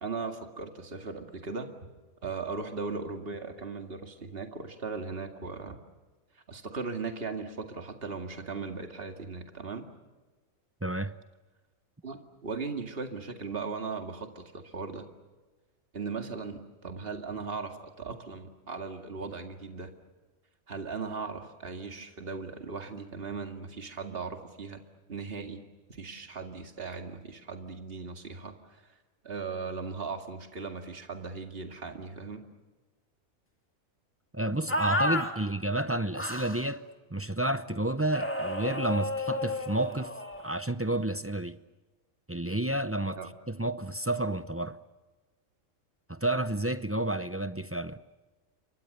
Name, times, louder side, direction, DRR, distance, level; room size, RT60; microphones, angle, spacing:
voice 1, 0.0-1.7 2.2-5.8 6.5-9.9 12.0-15.0 15.9-19.9 20.7-24.8 25.1-25.6 25.9-28.8 29.2-32.4 43.2-43.3, right 4 dB, 45° right, 2.4 m, -38 dB
voice 2, 10.8-11.1 34.3-36.8 37.1-40.1 40.4-41.6 42.3-43.2 43.5-44.8 46.1-48.0, right 1 dB, 15° right, 0.5 m, -30 dB
sound 1, 34.7-35.3 36.1-36.6 38.1-40.5, left 1 dB, 10° left, 2.3 m, -31 dB
29.5 x 24.5 x 6.8 m
omnidirectional pair, 1.4 m